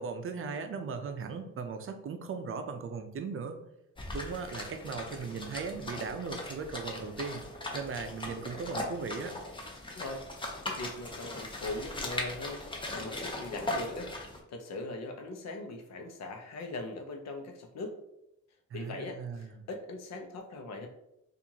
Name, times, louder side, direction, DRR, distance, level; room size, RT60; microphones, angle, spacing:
voice 1, 0.0-3.6 4.1-7.4 7.7-9.3 18.7-19.5, right 5 dB, 45° right, 7 dB, 0.5 m, -38 dB
sound 1, 4.0-14.4, left 1 dB, 15° left, 0.8 m, -39 dB
voice 2, 9.9-10.3 10.6-12.6 12.9-14.1 14.5-18.0 18.7-20.9, left 2 dB, 60° left, 4 dB, 0.8 m, -40 dB
4.3 x 2.6 x 2.8 m, 0.84 s
cardioid pair, 90°, 30 cm